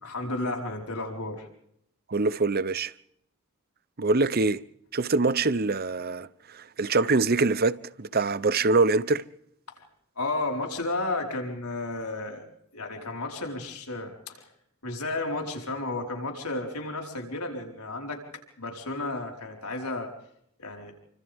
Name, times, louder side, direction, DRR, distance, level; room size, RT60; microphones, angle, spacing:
voice 1, 0.0-1.5 9.8-9.9 10.2-12.4 12.7-14.4 14.8-18.2 18.6-20.1 20.6-20.9, left 2 dB, 85° left, 4.8 m, -32 dB
voice 2, 2.1-2.9 4.0-4.6 4.9-9.3, right 3 dB, 45° right, 0.8 m, -24 dB
29.5 x 25.5 x 3.6 m
head